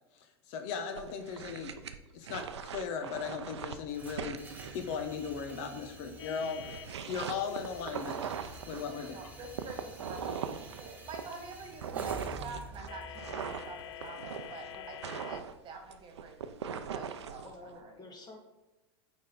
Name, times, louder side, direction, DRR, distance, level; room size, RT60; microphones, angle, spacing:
voice 1, 0.1-1.7 2.1-4.4 4.7-6.6 7.1-8.3 8.7-9.2, left 6 dB, 55° left, 6 dB, 0.9 m, -37 dB
sound 1, 1.0-5.8 6.2-8.9 9.4-17.6, right 7 dB, 85° right, 0.5 m, -40 dB
sound 2, 3.9-15.9, right 2 dB, 10° right, 1.3 m, -50 dB
sound 3, 6.2-9.9 12.9-15.4, left 11 dB, 90° left, 0.4 m, -48 dB
voice 2, 8.7-17.9, right 3 dB, 35° right, 3 dB, 1.6 m, -47 dB
voice 3, 17.4-18.4, left 2 dB, 30° left, 1 dB, 1.8 m, -50 dB
9.1 x 3.6 x 4.0 m, 1.0 s
hypercardioid pair, 100°, 14 cm